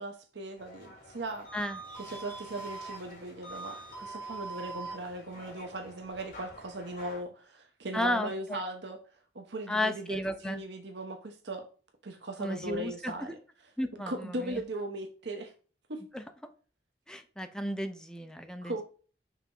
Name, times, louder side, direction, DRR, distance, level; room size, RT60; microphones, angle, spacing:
voice 1, 0.0-1.5 2.0-9.0 9.3-11.6 12.0-13.4 14.1-15.5 15.9-16.0 18.6-18.8, right 2 dB, 80° right, 4 dB, 1.0 m, -38 dB
sound 1, 0.6-7.2, right 2 dB, 55° left, 2.9 m, -44 dB
voice 2, 7.9-8.6 9.7-10.6 12.4-13.3 13.8-14.6 16.1-16.2 17.1-18.8, left 1 dB, 5° left, 7 dB, 0.7 m, -33 dB
5.8 x 3.6 x 5.4 m, 0.38 s
head